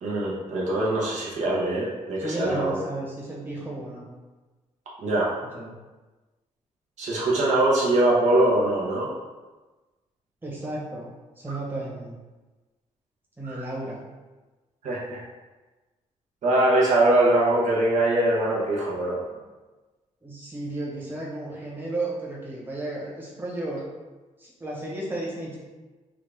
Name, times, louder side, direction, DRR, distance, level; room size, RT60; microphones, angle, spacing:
voice 1, 0.0-2.8 5.0-5.3 7.0-9.1 13.5-13.6 14.8-15.2 16.4-19.2, right 1 dB, 70° right, -5 dB, 0.9 m, -22 dB
voice 2, 2.2-4.1 5.5-5.7 10.4-11.1 11.4-12.2 13.4-14.0 19.3-19.4 20.2-23.8 24.4-25.6, right 2 dB, 15° right, -5 dB, 1.1 m, -33 dB
3.6 x 2.4 x 3.3 m, 1.2 s
cardioid pair, 105°, 13 cm